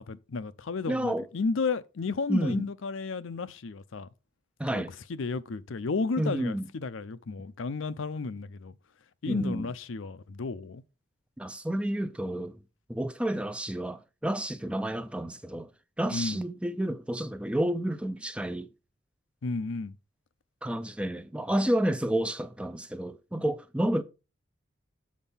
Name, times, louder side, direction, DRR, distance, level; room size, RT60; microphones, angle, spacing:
voice 1, 0.0-4.1 4.7-4.8 5.1-8.7 9.2-10.8 16.1-16.4 19.4-19.9, left 4 dB, 75° left, 0.5 m, -33 dB
voice 2, 0.9-1.3 2.3-2.6 4.6-4.9 6.2-6.7 9.3-9.7 11.4-12.5 12.9-15.7 16.0-18.7 20.6-24.0, right 1 dB, 5° right, 0.4 m, -30 dB
7.3 x 4.4 x 5.6 m
head